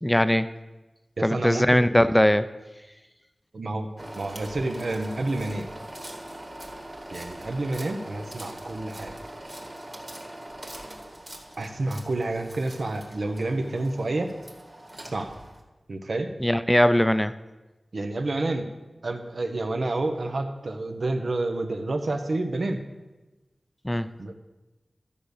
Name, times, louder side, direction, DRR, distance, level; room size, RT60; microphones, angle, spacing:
voice 1, 0.0-0.5 1.2-2.5 16.4-17.3 23.8-24.1, left 1 dB, 10° left, 12 dB, 0.5 m, -20 dB
voice 2, 1.2-1.9 3.5-3.9 4.1-5.7 7.1-9.1 11.6-14.3 15.1-15.3 15.9-16.3 17.9-18.7 19.0-22.8 24.2-24.3, right 2 dB, 70° right, 6 dB, 1.0 m, -29 dB
sound 1, 4.0-15.6, right 1 dB, 30° right, 1.9 m, -42 dB
12.5 x 5.2 x 6.6 m, 1.1 s
wide cardioid pair, 60°, 0 cm